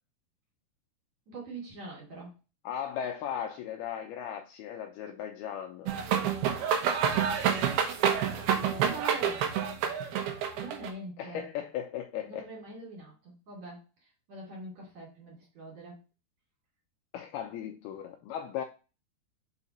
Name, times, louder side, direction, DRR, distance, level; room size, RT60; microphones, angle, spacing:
voice 1, 1.3-2.3 8.5-9.4 10.5-11.4 12.3-13.8 14.3-16.0, right 2 dB, 45° right, 3.1 m, -44 dB
voice 2, 2.6-5.9 11.2-12.5 17.1-18.6, left 9 dB, 90° left, 2.2 m, -37 dB
sound 1, 5.9-10.9, right 8 dB, 70° right, 2.6 m, -28 dB
6.1 x 4.9 x 4.2 m
omnidirectional pair, 5.3 m